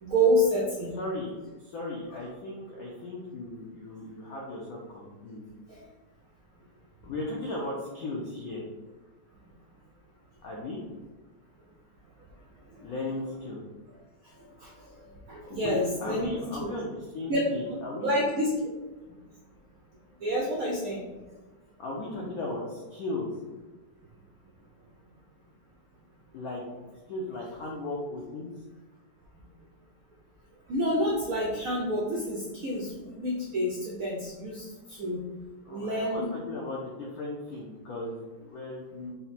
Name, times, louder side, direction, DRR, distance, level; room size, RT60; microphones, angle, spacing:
voice 1, 0.0-1.0 5.7-5.8 14.6-14.7 15.3-16.3 16.6-16.7 17.3-17.8 18.0-18.5 20.2-21.0 30.7-35.2 35.7-36.3, equal, 85° right, -3 dB, 0.7 m, -28 dB
voice 2, 1.0-1.3 1.6-5.4 7.0-8.7 10.4-10.8 12.8-13.6 15.4-18.2 21.8-23.3 26.3-26.6 27.1-28.5 35.7-39.1, left 2 dB, 80° left, -3 dB, 0.8 m, -36 dB
4.1 x 2.1 x 4.1 m, 1.2 s
omnidirectional pair, 2.2 m